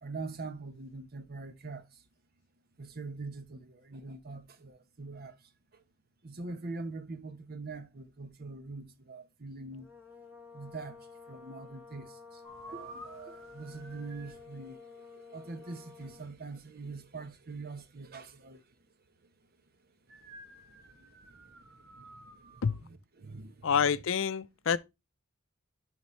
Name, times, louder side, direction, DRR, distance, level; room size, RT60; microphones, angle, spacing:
voice 1, 0.0-1.9 2.8-5.3 5.7-5.8 6.2-9.9 10.5-12.4 12.7-18.6 21.9-22.9 23.2-23.7, right 3 dB, 50° right, 0.9 m, -43 dB
sound 1, 9.7-16.3, left 5 dB, 10° right, 1.5 m, -52 dB
sound 2, 12.4-14.4 20.1-22.8, right 2 dB, 75° right, 1.9 m, -51 dB
voice 2, 23.6-24.8, left 7 dB, 65° left, 0.5 m, -27 dB
11.5 x 4.2 x 3.1 m
head